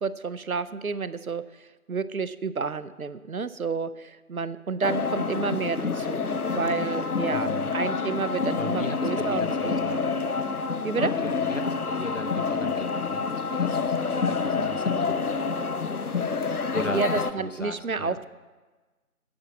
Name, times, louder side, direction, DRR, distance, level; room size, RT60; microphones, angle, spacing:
voice 1, 0.0-10.0 10.8-11.1 16.9-18.3, right 5 dB, 70° right, 14 dB, 0.6 m, -30 dB
sound 1, 4.8-17.3, left 4 dB, 75° left, 0.8 m, -28 dB
voice 2, 7.3-7.7 8.6-10.0 11.0-18.2, left 2 dB, 55° left, 7 dB, 0.9 m, -37 dB
8.8 x 6.9 x 7.3 m, 1.3 s
figure-of-eight pair, 175°, 45 cm